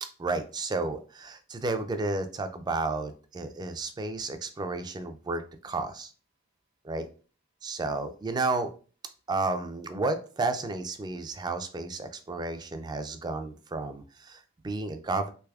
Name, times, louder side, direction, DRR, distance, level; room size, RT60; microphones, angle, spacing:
voice 1, 0.0-6.1 6.8-7.1 7.6-8.7 9.3-15.3, right 3 dB, 20° right, 8 dB, 0.3 m, -32 dB
3.3 x 3.2 x 2.3 m, 0.38 s
head